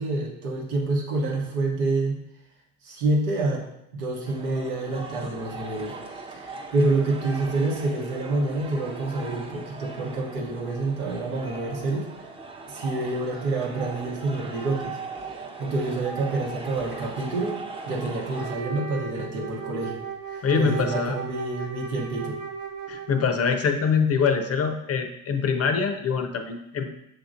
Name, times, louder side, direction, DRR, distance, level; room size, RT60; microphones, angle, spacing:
voice 1, 0.0-2.2 2.8-3.6 3.9-6.0 6.3-12.3 12.7-15.0 15.3-17.6 17.9-20.0 20.3-22.4, right 2 dB, 85° right, -2 dB, 1.1 m, -27 dB
sound 1, 4.2-18.6, right 3 dB, 15° right, 0.6 m, -39 dB
Wind instrument woodwind instrument, 18.3-23.5, right 6 dB, 50° right, 1.1 m, -36 dB
voice 2, 20.4-21.2 22.9-26.9, left 5 dB, 35° left, 7 dB, 0.6 m, -24 dB
6.3 x 2.9 x 2.6 m, 0.81 s
hypercardioid pair, 65°, 42 cm